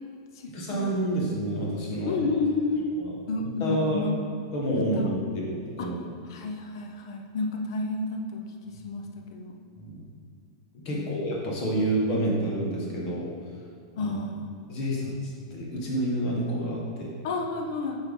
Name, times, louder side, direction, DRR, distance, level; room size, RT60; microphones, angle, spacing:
voice 1, 0.5-2.2 3.0-3.1 3.4-4.0 4.5-6.0 9.8-10.0 10.7-13.3 14.0-14.1 14.7-15.1 15.5-17.1, right 1 dB, 35° left, -3 dB, 1.4 m, -28 dB
voice 2, 2.0-2.9 3.3-4.1 5.0-5.1 5.8-5.9 6.3-8.4 8.8-9.6 10.9-11.1 14.0-14.5 17.2-18.0, left 3 dB, 60° left, 2 dB, 0.7 m, -30 dB
7.8 x 4.4 x 3.7 m, 2.4 s
supercardioid pair, 170°, 3 cm